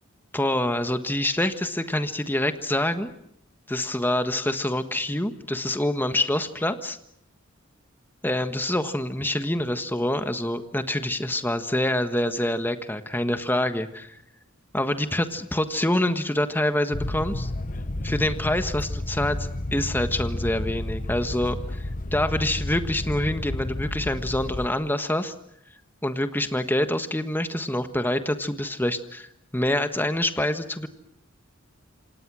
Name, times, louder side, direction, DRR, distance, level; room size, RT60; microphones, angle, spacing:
voice 1, 0.3-3.1 3.7-7.0 8.2-14.2 14.7-17.5 18.0-25.3 26.0-30.9, left 1 dB, 10° left, 9 dB, 1.4 m, -26 dB
sound 1, 16.9-24.7, left 1 dB, 40° left, 1.0 m, -31 dB
28.0 x 26.5 x 6.3 m, 0.76 s
head